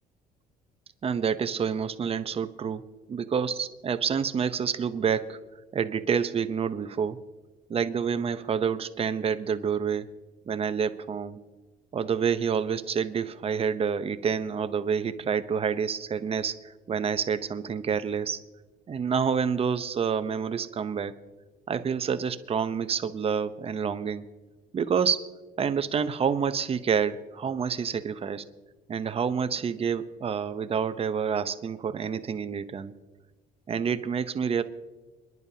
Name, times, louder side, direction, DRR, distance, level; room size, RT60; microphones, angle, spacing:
voice 1, 1.0-5.4 5.7-7.2 7.7-10.1 10.5-11.4 11.9-18.4 18.9-21.1 21.7-24.3 24.7-25.3 25.6-28.4 28.9-32.9 33.7-34.6, right 6 dB, 35° right, 11 dB, 0.8 m, -28 dB
28.5 x 11.0 x 2.8 m, 1.2 s
cardioid pair, 110°, 17 cm